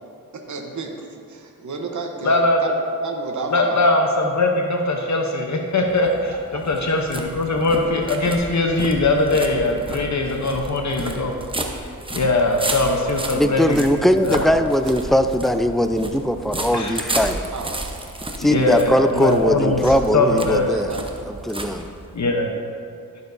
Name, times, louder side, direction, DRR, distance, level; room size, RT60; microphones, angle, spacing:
voice 1, 0.3-0.9 1.3-2.3 2.6-3.8 6.5-6.6 17.5-18.0 20.6-21.5, right 3 dB, 55° right, 2 dB, 0.9 m, -31 dB
voice 2, 2.2-2.6 3.5-11.4 11.8-11.9 12.1-13.9 14.2-14.4 16.7-16.9 18.5-20.7 22.1-22.5, left 2 dB, 55° left, 2 dB, 0.8 m, -21 dB
sound 1, 5.8-22.3, right 1 dB, 15° right, 0.8 m, -32 dB
voice 3, 13.3-17.5 18.4-20.9 21.2-21.9, equal, ahead, 8 dB, 0.4 m, -20 dB
12.0 x 6.6 x 2.6 m, 2.4 s
cardioid pair, 55°, 35 cm